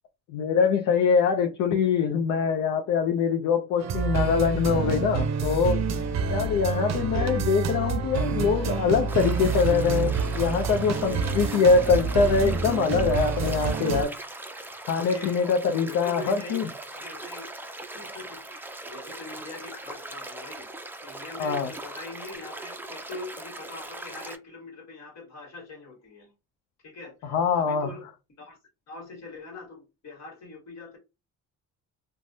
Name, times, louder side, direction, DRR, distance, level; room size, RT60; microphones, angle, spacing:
voice 1, 0.3-5.8 6.3-14.1 14.9-16.7 21.4-21.7 27.2-27.9, left 5 dB, 80° left, 0.5 m, -23 dB
sound 1, 3.8-14.0, right 5 dB, 60° right, 0.5 m, -28 dB
sound 2, 9.1-24.4, right 2 dB, 5° right, 0.3 m, -40 dB
voice 2, 14.9-15.4 15.8-16.6 16.9-17.5 17.9-20.7 21.0-26.3 26.8-28.1 28.4-28.6 28.9-31.0, left 3 dB, 60° left, 1.4 m, -42 dB
3.2 x 2.1 x 2.6 m
cardioid pair, 90°, 30 cm